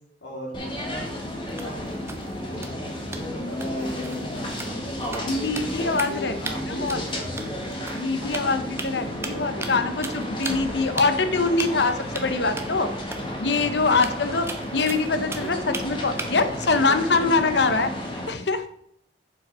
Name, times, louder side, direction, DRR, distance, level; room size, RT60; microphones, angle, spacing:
voice 1, 0.2-1.1 1.3-1.8 2.6-7.5 8.2-9.8 14.1-14.4, left 1 dB, 90° left, -2 dB, 3.1 m, -39 dB
sound 1, 0.5-18.3, equal, 25° left, 1.5 m, -32 dB
sound 2, 1.5-6.2 6.4-6.5 6.9-8.1 8.3-8.9 9.2-9.8 10.0-10.7 11.0-11.1 11.6-11.8 12.1-12.2 12.6-12.7 13.1-13.2 13.5-13.6 13.9-15.8 16.2-16.6, right 3 dB, 15° right, 0.7 m, -36 dB
voice 2, 5.3-6.4 6.7-7.0 7.9-12.9 13.4-17.9 18.3-18.6, left 3 dB, 70° left, 9 dB, 0.8 m, -24 dB
7.3 x 5.4 x 5.3 m, 0.70 s
head